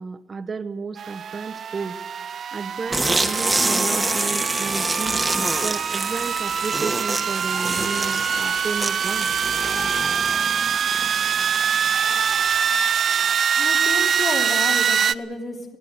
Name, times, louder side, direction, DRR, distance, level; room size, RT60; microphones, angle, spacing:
voice 1, 0.0-2.0 2.5-5.3 5.6-9.3, right 5 dB, 30° right, 9 dB, 1.1 m, -32 dB
sound 1, 1.0-15.1, right 7 dB, 45° right, 0.7 m, -24 dB
sound 2, 2.9-12.4, right 2 dB, 15° right, 1.9 m, -27 dB
sound 3, 7.4-8.9 9.5-10.5 11.8-12.8, left 1 dB, 10° left, 3.3 m, -39 dB
voice 2, 13.6-15.8, left 3 dB, 35° left, 3 dB, 3.2 m, -31 dB
23.0 x 16.5 x 8.1 m, 1.2 s
cardioid pair, 110°, 0 cm